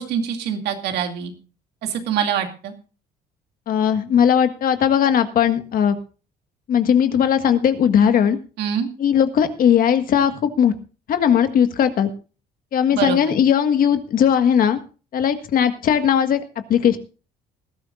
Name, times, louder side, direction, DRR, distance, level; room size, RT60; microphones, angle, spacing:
voice 1, 0.0-1.3 1.8-2.7 8.6-8.9 12.9-13.2, right 8 dB, 80° right, 5 dB, 2.5 m, -24 dB
voice 2, 3.7-6.0 6.7-8.4 9.0-10.7 11.1-12.1 12.7-14.8 15.1-16.4 16.7-17.0, left 8 dB, 60° left, 9 dB, 1.7 m, -18 dB
20.0 x 12.5 x 2.5 m, 0.36 s
cardioid pair, 110°, 17 cm